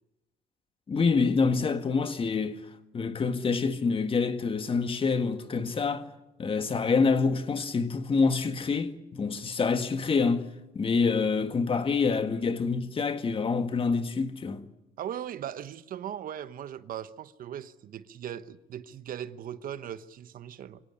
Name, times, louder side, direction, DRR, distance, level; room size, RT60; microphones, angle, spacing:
voice 1, 0.9-2.6 2.9-6.1 6.4-10.5 10.7-14.6, left 4 dB, 30° left, 1.8 m, -26 dB
voice 2, 15.0-20.8, right 10 dB, 55° right, 1.0 m, -39 dB
24.0 x 17.5 x 10.0 m
cardioid pair, 110°, 17 cm